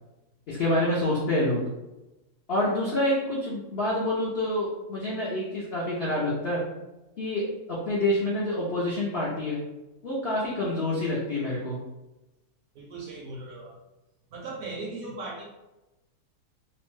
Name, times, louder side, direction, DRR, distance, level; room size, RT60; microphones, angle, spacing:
voice 1, 0.5-1.6 2.5-6.6 7.2-7.5 7.8-9.6 10.0-11.8, left 1 dB, 75° left, -6 dB, 0.5 m, -27 dB
voice 2, 12.7-13.8 14.3-15.4, right 3 dB, 70° right, -2 dB, 0.9 m, -38 dB
2.8 x 2.1 x 3.1 m, 1.0 s
omnidirectional pair, 1.9 m